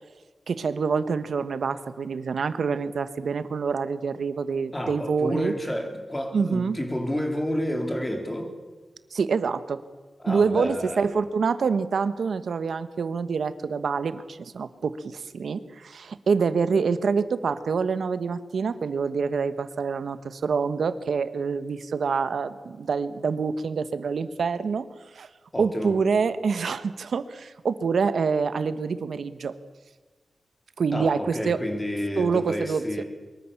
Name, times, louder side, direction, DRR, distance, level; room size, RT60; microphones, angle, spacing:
voice 1, 0.5-5.5 6.3-6.8 9.1-9.8 10.3-24.9 25.1-25.3 25.6-29.6 30.8-31.6 32.2-33.0, right 5 dB, 90° right, 13 dB, 1.3 m, -26 dB
voice 2, 4.7-8.5 10.2-11.1 25.5-26.0 30.9-33.0, equal, 15° left, 4 dB, 4.0 m, -30 dB
24.0 x 22.5 x 7.2 m, 1.3 s
wide cardioid pair, 115°, 0 cm